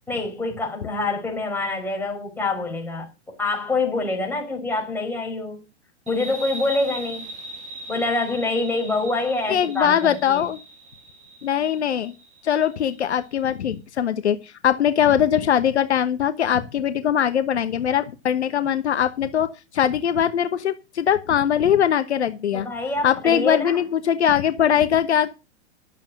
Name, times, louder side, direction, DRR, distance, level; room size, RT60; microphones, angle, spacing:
voice 1, 0.1-3.1 3.4-5.6 6.1-7.3 7.9-10.5 22.5-23.8, left 2 dB, 5° left, 5.0 m, -26 dB
sound 1, 6.1-13.3, right 1 dB, 20° right, 2.8 m, -39 dB
voice 2, 9.5-10.6 11.4-12.1 12.4-19.5 19.7-22.7 23.0-25.3, left 9 dB, 70° left, 1.1 m, -21 dB
11.5 x 7.3 x 6.4 m
hypercardioid pair, 110°, 34 cm